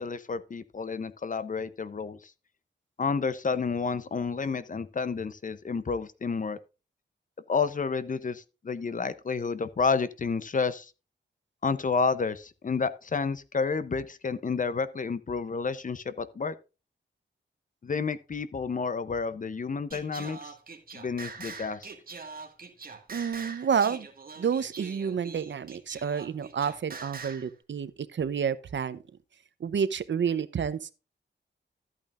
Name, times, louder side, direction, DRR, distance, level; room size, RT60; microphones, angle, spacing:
voice 1, 0.0-2.3 3.0-6.6 7.5-10.9 11.6-16.5 17.8-20.5 20.9-21.9, left 5 dB, 45° left, 0.7 m, -30 dB
Singing, 19.9-27.5, right 4 dB, 50° right, 1.8 m, -43 dB
voice 2, 23.1-24.1 24.4-29.0 29.6-30.9, right 7 dB, 70° right, 0.7 m, -29 dB
13.0 x 8.7 x 2.5 m
wide cardioid pair, 135°, 20 cm